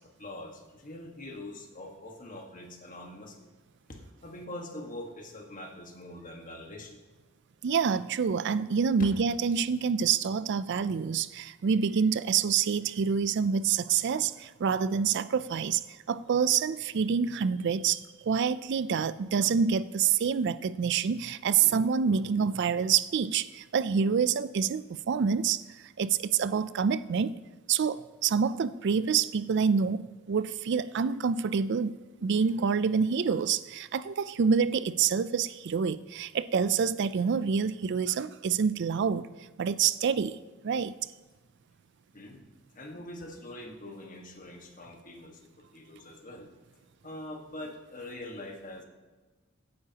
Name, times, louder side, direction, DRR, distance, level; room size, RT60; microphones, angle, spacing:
voice 1, 0.0-3.5 3.9-7.0 42.1-42.5 42.7-46.5 47.0-48.8, left 1 dB, 40° left, 2 dB, 1.5 m, -44 dB
voice 2, 7.6-15.8 16.1-25.6 26.0-27.4 27.7-39.3 39.6-40.4 40.6-40.9, right 6 dB, 60° right, 15 dB, 0.4 m, -27 dB
16.5 x 9.6 x 2.9 m, 1.2 s
head